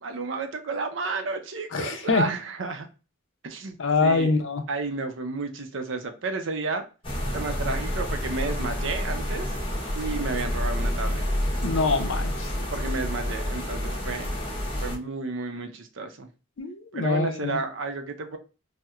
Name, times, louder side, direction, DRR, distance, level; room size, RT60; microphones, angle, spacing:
voice 1, 0.0-2.9 3.4-4.4 4.7-6.8 7.3-9.6 9.9-11.2 12.7-14.3 14.8-16.3 16.9-18.4, right 3 dB, 70° right, 0.6 m, -32 dB
voice 2, 1.7-2.2 3.8-4.6 11.6-12.5 16.6-17.6, left 4 dB, 70° left, 0.6 m, -24 dB
sound 1, 7.0-15.0, equal, 30° left, 0.9 m, -29 dB
4.2 x 2.1 x 2.4 m
head